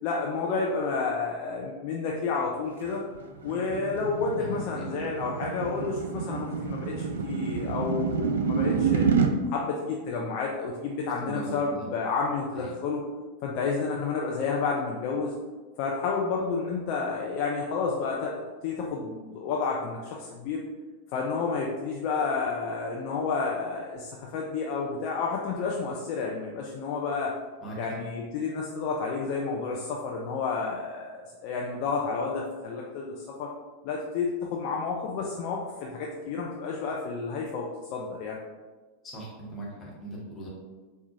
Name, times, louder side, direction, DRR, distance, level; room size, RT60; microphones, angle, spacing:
voice 1, 0.0-3.0 3.4-9.0 9.5-13.0 13.4-15.3 15.8-20.6 21.1-27.3 27.8-33.5 33.8-38.4, left 4 dB, 45° left, -1 dB, 0.4 m, -30 dB
sound 1, 2.9-9.3, right 5 dB, 65° right, 0.3 m, -28 dB
voice 2, 4.4-4.9 11.2-11.9 12.6-12.7 27.6-27.8 39.0-40.5, right 2 dB, 20° left, -4 dB, 1.0 m, -40 dB
4.3 x 2.3 x 2.7 m, 1.3 s
figure-of-eight pair, 90°, 0 cm